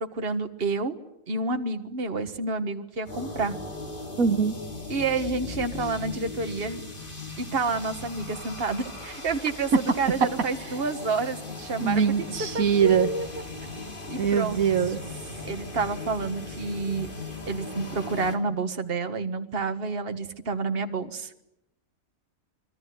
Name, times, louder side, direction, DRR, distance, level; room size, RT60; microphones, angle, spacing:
voice 1, 0.1-0.9 1.3-3.6 4.9-6.8 7.4-12.0 12.5-13.3 14.1-14.6 15.5-17.1 17.5-21.3, right 3 dB, 45° right, 8 dB, 1.8 m, -29 dB
sound 1, 3.0-18.4, left 3 dB, 35° left, 3.4 m, -38 dB
voice 2, 4.2-4.6 11.8-13.1 14.2-15.0, right 7 dB, 80° right, 8 dB, 1.7 m, -23 dB
26.0 x 24.5 x 9.5 m, 0.85 s
omnidirectional pair, 1.5 m